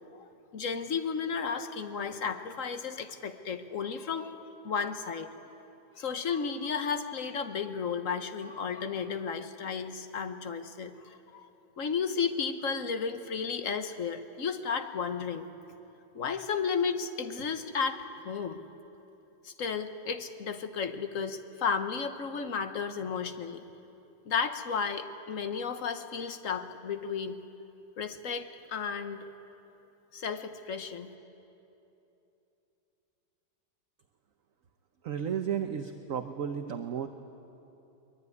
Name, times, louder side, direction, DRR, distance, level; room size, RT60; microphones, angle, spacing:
voice 1, 0.2-4.3 4.6-5.3 6.0-11.5 11.8-15.5 16.1-18.6 19.4-23.6 24.2-27.4 28.0-29.3 30.1-31.1, left 6 dB, 50° left, 8 dB, 1.5 m, -33 dB
voice 2, 35.0-37.1, right 8 dB, 55° right, 6 dB, 1.2 m, -33 dB
23.5 x 22.0 x 9.6 m, 2.9 s
omnidirectional pair, 1.9 m